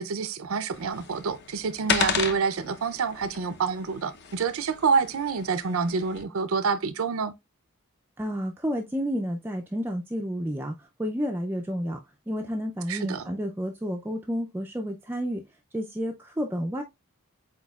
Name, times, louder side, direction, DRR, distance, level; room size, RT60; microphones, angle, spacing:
voice 1, 0.0-7.3 12.9-13.3, right 5 dB, 70° right, 0.5 m, -27 dB
sound 1, 0.7-6.2, left 6 dB, 50° left, 0.7 m, -34 dB
voice 2, 8.2-12.0 12.3-15.4 15.7-16.8, equal, 10° right, 0.3 m, -30 dB
8.1 x 2.8 x 2.3 m
head